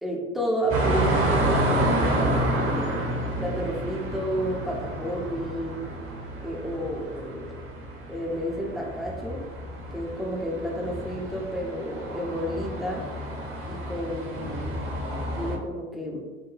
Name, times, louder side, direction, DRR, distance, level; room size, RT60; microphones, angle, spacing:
voice 1, 0.0-2.5 3.4-5.8 6.4-7.5 8.1-9.5 9.9-13.0 13.7-14.8 15.3-16.2, equal, ahead, -3 dB, 0.6 m, -31 dB
sound 1, 0.7-15.6, right 1 dB, 35° right, 0.9 m, -29 dB
4.8 x 2.2 x 2.4 m, 1.4 s
figure-of-eight pair, 75°, 39 cm